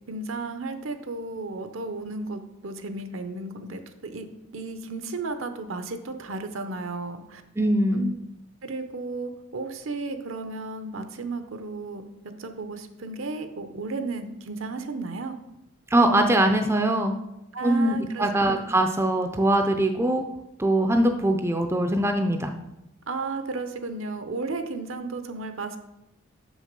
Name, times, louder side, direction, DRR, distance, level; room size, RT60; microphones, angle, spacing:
voice 1, 0.1-7.4 7.9-8.1 8.6-15.4 17.5-18.7 23.1-25.8, right 3 dB, 65° right, 8 dB, 0.7 m, -34 dB
voice 2, 7.6-8.1 15.9-17.2 17.6-20.3 20.6-22.5, right 1 dB, 10° right, 5 dB, 0.4 m, -22 dB
6.3 x 6.3 x 5.2 m, 0.89 s
head